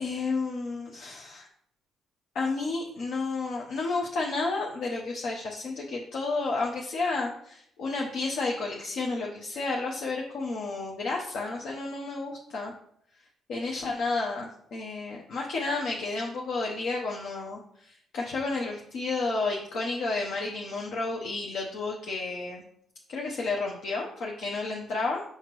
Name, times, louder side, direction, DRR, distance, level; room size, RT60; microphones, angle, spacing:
voice 1, 0.0-1.5 2.3-12.7 13.5-22.6 23.1-25.2, left 3 dB, 75° left, -2 dB, 0.9 m, -31 dB
5.7 x 5.6 x 3.1 m, 0.70 s
cardioid pair, 90°, 0 cm